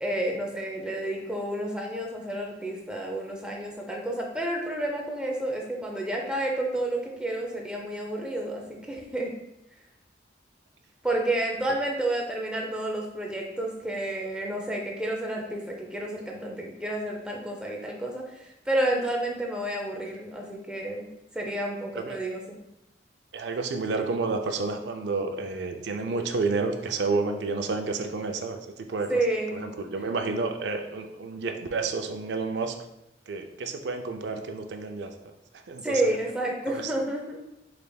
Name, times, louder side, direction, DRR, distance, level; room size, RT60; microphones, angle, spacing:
voice 1, 0.0-9.3 11.0-22.4 29.1-29.7 35.8-37.4, right 1 dB, 5° right, -1 dB, 0.5 m, -30 dB
voice 2, 23.3-29.1 29.5-32.8 33.3-35.1 35.7-36.0, right 3 dB, 70° right, 5 dB, 0.4 m, -30 dB
5.0 x 3.3 x 2.3 m, 0.88 s
head